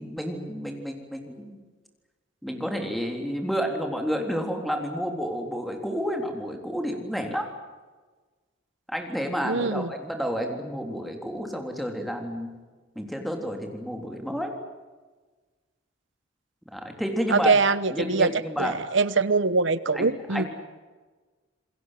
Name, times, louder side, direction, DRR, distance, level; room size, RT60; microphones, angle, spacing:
voice 1, 0.0-1.6 2.4-7.5 8.9-12.5 13.0-14.5 16.7-17.5 17.9-18.7 19.9-20.5, equal, ahead, 3 dB, 3.6 m, -30 dB
voice 2, 9.4-9.9 17.3-18.3 18.6-20.4, right 4 dB, 70° right, 16 dB, 1.1 m, -23 dB
28.0 x 21.5 x 7.7 m, 1.3 s
head